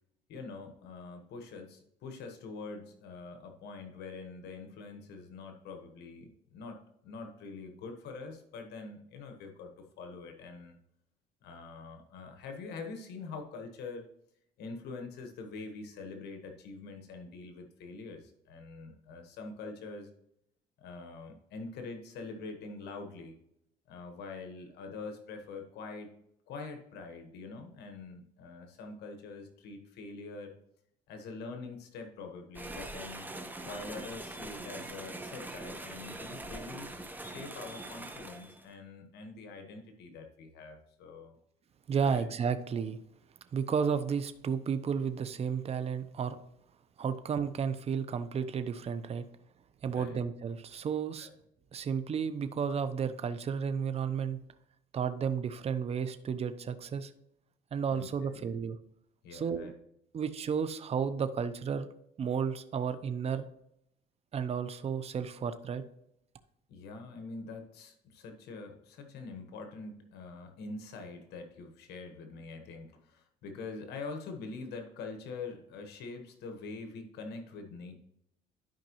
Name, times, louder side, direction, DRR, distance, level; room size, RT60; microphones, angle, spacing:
voice 1, 0.3-10.8 11.4-14.1 14.6-20.1 20.8-23.4 23.9-26.1 26.5-30.5 31.1-33.3 33.6-41.4 42.0-42.2 49.9-50.2 51.2-51.3 57.9-58.5 59.2-59.7 66.7-78.0, left 4 dB, 75° left, 5 dB, 1.3 m, -44 dB
sound 1, 32.5-38.6, right 2 dB, 10° right, 1.1 m, -43 dB
voice 2, 41.9-43.0 43.5-46.4 47.0-49.2 49.8-51.3 51.7-54.4 54.9-57.1 57.7-58.8 59.3-59.7 60.1-61.9 62.2-63.5 64.3-65.8, right 6 dB, 35° right, 10 dB, 0.7 m, -32 dB
12.0 x 5.2 x 3.0 m, 0.76 s
cardioid pair, 110°, 17 cm